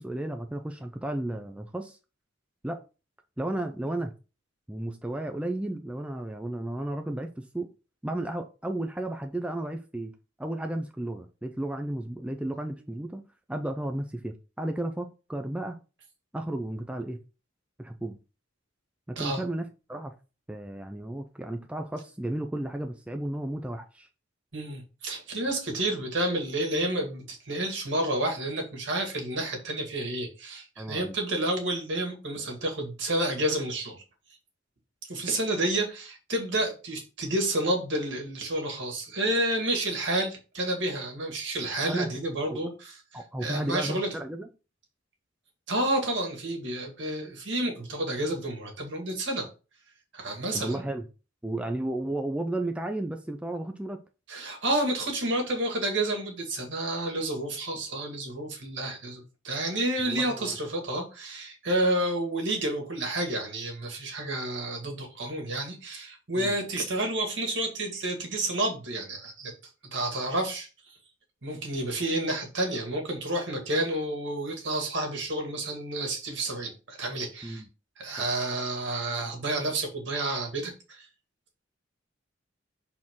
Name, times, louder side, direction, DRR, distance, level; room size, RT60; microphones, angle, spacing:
voice 1, 0.0-2.0 2.6-2.8 3.4-4.1 4.7-7.7 8.0-10.1 10.4-13.2 13.5-15.8 16.3-17.2 17.8-18.2 19.1-20.1 20.5-24.1 30.8-31.1 41.9-42.1 42.5-42.6 43.1-44.5 50.5-51.0 51.4-54.0 60.0-60.6 66.4-66.5 77.4-77.7, right 1 dB, 5° right, 0.5 m, -33 dB
voice 2, 24.5-34.0 35.1-43.0 43.4-44.1 45.7-49.5 50.1-50.8 54.3-69.5 69.9-71.0 71.4-77.6 78.0-81.1, right 1 dB, 65° right, 2.0 m, -30 dB
6.1 x 4.2 x 3.7 m
head